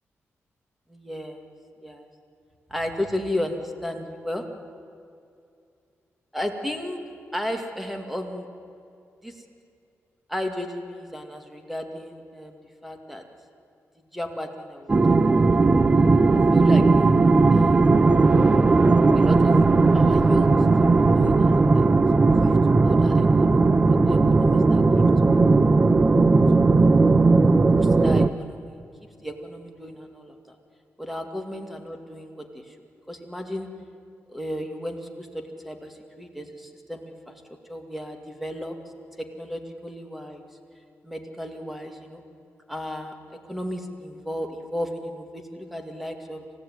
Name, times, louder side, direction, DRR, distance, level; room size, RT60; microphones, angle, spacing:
voice 1, 0.9-1.4 1.8-2.1 2.7-4.4 6.3-7.0 7.3-8.5 9.2-9.4 10.3-13.2 14.1-15.2 16.5-17.2 17.5-18.0 19.1-19.6 19.9-20.5 20.8-21.9 22.4-22.5 22.8-25.0 26.5-26.6 27.7-28.8 29.2-30.5 31.0-32.8 33.1-33.7 34.3-37.3 37.7-38.7 39.4-40.5 41.0-42.2 42.7-43.1 43.5-46.4, left 1 dB, ahead, 4 dB, 2.2 m, -34 dB
sound 1, 14.9-28.3, right 3 dB, 25° right, 0.6 m, -17 dB
27.5 x 16.5 x 9.5 m, 2.5 s
wide cardioid pair, 145°, 5 cm